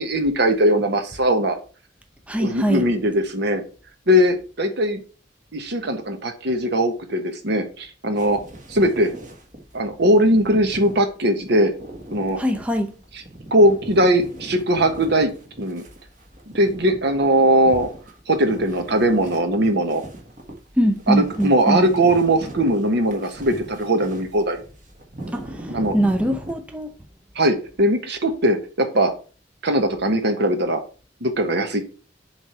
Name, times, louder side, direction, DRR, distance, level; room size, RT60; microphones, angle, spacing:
voice 1, 0.0-1.6 2.4-3.6 4.1-5.0 5.5-8.4 8.7-9.1 9.7-11.7 12.1-12.4 13.5-15.3 15.6-15.8 16.5-17.9 18.3-20.0 21.1-24.6 25.7-26.0 27.3-29.1 29.6-30.8 31.2-31.8, right 1 dB, 65° right, 1.2 m, -20 dB
voice 2, 2.3-2.8 12.4-12.9 20.8-21.8 25.3-25.6 25.9-26.9, equal, 5° right, 0.6 m, -22 dB
sound 1, 8.2-26.5, right 1 dB, 45° right, 1.6 m, -39 dB
7.2 x 3.3 x 5.8 m
head